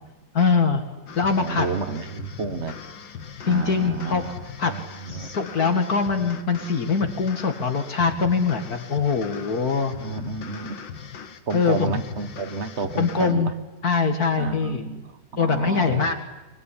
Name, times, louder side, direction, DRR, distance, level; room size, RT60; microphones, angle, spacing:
voice 1, 0.3-0.8 1.2-1.7 3.5-4.2 4.6-4.7 5.1-9.9 11.5-12.0 13.0-13.5 13.8-14.8 15.4-16.2, left 5 dB, 55° left, 6 dB, 2.2 m, -22 dB
sound 1, 1.1-13.3, left 7 dB, 85° left, 2.3 m, -40 dB
voice 2, 1.4-2.8 3.4-4.3 4.6-5.3 10.0-10.8 11.5-13.5 14.4-16.1, right 4 dB, 40° right, 12 dB, 1.6 m, -31 dB
25.5 x 22.0 x 9.9 m, 1.1 s
omnidirectional pair, 2.0 m